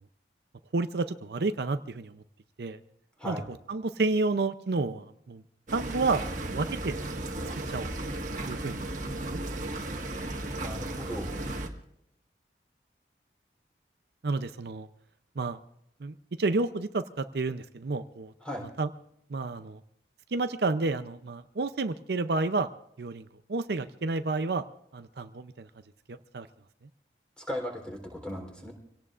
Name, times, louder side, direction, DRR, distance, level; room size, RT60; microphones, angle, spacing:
voice 1, 0.7-2.2 2.6-2.8 3.2-3.4 3.7-5.4 5.7-7.0 7.7-7.9 8.5-8.9 9.3-9.4 14.2-14.9 15.4-15.6 16.0-18.3 18.8-18.9 19.3-19.8 20.3-22.7 23.0-24.6 24.9-25.7 26.1-26.5, right 3 dB, 65° right, 10 dB, 0.6 m, -30 dB
sound 1, 5.7-11.7, right 1 dB, 45° right, 1.6 m, -35 dB
voice 2, 10.6-11.3 18.4-18.7 27.4-28.7, left 1 dB, 5° left, 1 dB, 3.5 m, -37 dB
26.0 x 17.5 x 2.5 m, 0.73 s
head